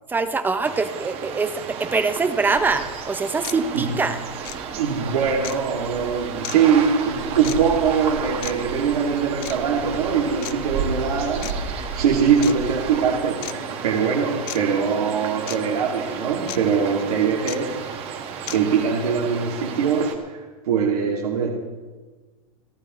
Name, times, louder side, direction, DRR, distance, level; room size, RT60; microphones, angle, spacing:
voice 1, 0.1-4.2 4.5-4.8, right 4 dB, 10° right, 10 dB, 0.6 m, -24 dB
sound 1, 0.6-20.2, right 7 dB, 30° right, 1.6 m, -33 dB
sound 2, 2.5-13.2, right 4 dB, 65° right, 3.9 m, -35 dB
sound 3, 2.7-2.8 3.4-3.6 4.4-4.6 5.4-5.6 6.4-6.6 7.4-7.6 8.4-8.5 9.4-9.6 10.4-10.5 11.4-11.5 12.4-12.6 13.4-13.5 14.5-14.6 15.5-15.6 16.5-16.6 17.5-17.6 18.5-18.6, left 20 dB, 40° left, 0.6 m, -33 dB
voice 2, 3.5-3.9 4.8-17.8 18.5-21.5, right 6 dB, 85° right, -2 dB, 2.3 m, -22 dB
29.5 x 10.5 x 3.1 m, 1.3 s
supercardioid pair, 145°, 19 cm